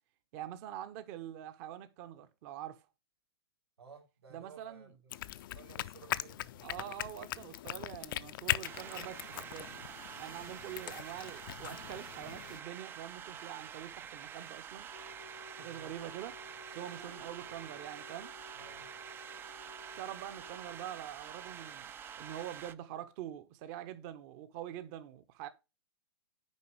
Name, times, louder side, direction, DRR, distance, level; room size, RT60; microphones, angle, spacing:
voice 1, 0.3-2.9 4.3-4.9 6.6-14.9 15.6-16.4 16.7-18.3 20.0-21.9 22.2-25.5, right 11 dB, 40° right, 0.9 m, -45 dB
voice 2, 3.8-5.1 5.5-6.6 15.6-15.9 16.7-17.3 18.5-18.9, right 5 dB, 70° right, 2.5 m, -56 dB
sound 1, 5.1-12.6, left 14 dB, 50° left, 0.5 m, -40 dB
sound 2, 8.6-22.7, right 8 dB, 15° right, 0.3 m, -47 dB
Wind instrument woodwind instrument, 14.9-21.0, left 6 dB, 85° left, 1.0 m, -56 dB
9.4 x 5.4 x 3.1 m
hypercardioid pair, 120°, 14 cm